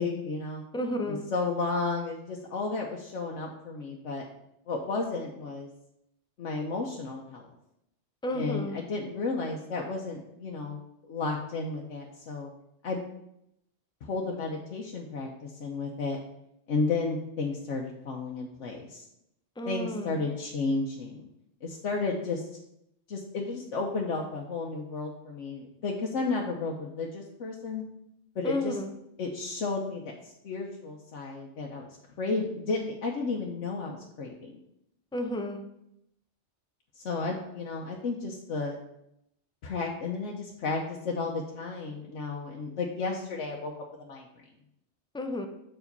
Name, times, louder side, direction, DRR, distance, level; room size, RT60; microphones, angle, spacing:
voice 1, 0.0-0.6 1.1-4.3 4.7-5.7 6.4-7.5 8.3-12.5 12.8-13.0 14.0-16.2 16.7-19.0 19.7-21.2 21.6-22.5 23.1-27.8 28.3-28.8 29.2-31.9 32.2-34.6 37.0-38.8 39.6-43.7 44.0-44.3, left 3 dB, 80° left, -1 dB, 1.2 m, -33 dB
voice 2, 0.7-1.3 8.2-8.8 19.6-20.2 28.4-28.9 35.1-35.6 45.1-45.5, left 1 dB, 5° left, 5 dB, 0.5 m, -32 dB
7.6 x 4.9 x 5.3 m, 0.80 s
omnidirectional pair, 1.2 m